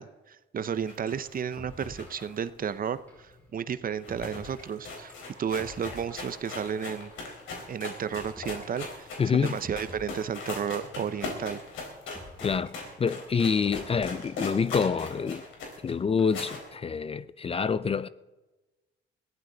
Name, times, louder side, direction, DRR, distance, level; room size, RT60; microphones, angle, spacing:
voice 1, 0.0-3.0 3.5-5.1 5.4-7.1 7.7-9.1 9.3-11.6, right 7 dB, 45° right, 0.8 m, -32 dB
sound 1, 0.6-0.7 1.1-1.2 1.6-2.3 3.1-3.3 4.1-4.6 5.1-6.5 7.1-7.3 8.1-8.7 9.1-9.3 9.6-10.5 11.1-11.4 12.1-12.7 13.2-14.5 15.2-15.3 16.2-16.6, left 1 dB, 5° left, 5.2 m, -48 dB
sound 2, 0.8-3.4 3.7-3.8 4.0-16.7, left 3 dB, 80° left, 4.7 m, -40 dB
voice 2, 9.2-9.5 12.4-15.4 15.8-18.1, left 6 dB, 30° left, 0.5 m, -27 dB
21.5 x 15.0 x 4.0 m
cardioid pair, 90°, 20 cm